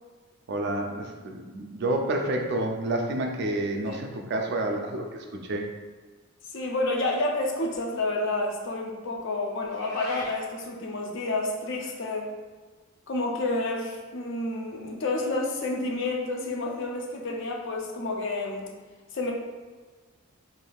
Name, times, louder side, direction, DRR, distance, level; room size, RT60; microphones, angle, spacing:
voice 1, 0.5-5.6, right 1 dB, 50° right, 2 dB, 0.4 m, -29 dB
voice 2, 6.5-12.3 13.1-18.7 19.1-19.3, left 2 dB, 55° left, 0 dB, 0.5 m, -29 dB
Meow, 9.7-10.4, left 1 dB, 15° left, 0.7 m, -39 dB
3.4 x 2.5 x 2.3 m, 1.4 s
head